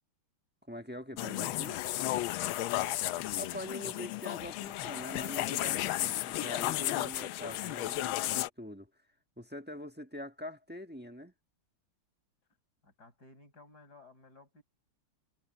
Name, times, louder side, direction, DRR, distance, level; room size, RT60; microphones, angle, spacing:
voice 1, 0.7-1.8 3.4-8.9 9.4-11.3, left 1 dB, 5° right, 1.1 m, -44 dB
sound 1, 1.2-8.5, left 15 dB, 75° left, 1.4 m, -33 dB
voice 2, 12.8-14.6, left 2 dB, 45° left, 6.8 m, -57 dB
omnidirectional pair, 2.3 m